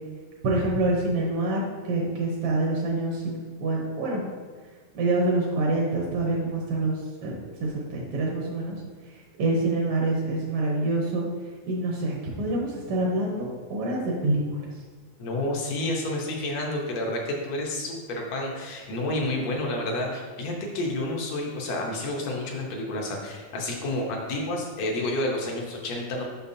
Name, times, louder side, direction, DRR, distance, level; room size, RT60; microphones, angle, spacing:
voice 1, 0.4-4.2 4.9-7.3 7.6-8.8 9.4-11.3 11.6-14.4, right 2 dB, 65° right, -2 dB, 1.4 m, -26 dB
voice 2, 15.2-26.2, left 1 dB, 70° left, 0 dB, 2.0 m, -30 dB
6.8 x 5.9 x 2.7 m, 1.5 s
omnidirectional pair, 3.4 m